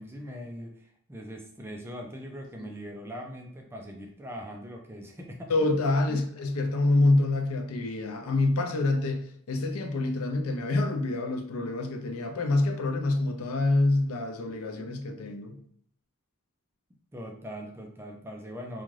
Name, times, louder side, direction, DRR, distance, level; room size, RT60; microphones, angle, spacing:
voice 1, 0.0-5.5 6.1-6.2 17.1-18.8, equal, 10° right, 0.3 m, -41 dB
voice 2, 5.5-15.6, left 2 dB, 85° left, 0.5 m, -26 dB
2.5 x 2.3 x 3.1 m
head